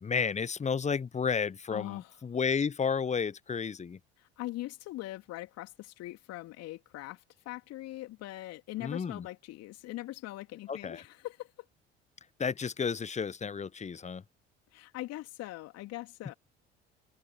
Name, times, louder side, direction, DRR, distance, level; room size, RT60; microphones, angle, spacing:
voice 1, 0.0-4.0 8.8-9.3 10.7-11.0 12.4-14.2, left 6 dB, 25° left, 1.1 m, -32 dB
voice 2, 1.7-2.2 4.2-11.5 14.7-16.3, left 17 dB, 55° left, 3.5 m, -41 dB
figure-of-eight pair, 55°, 30 cm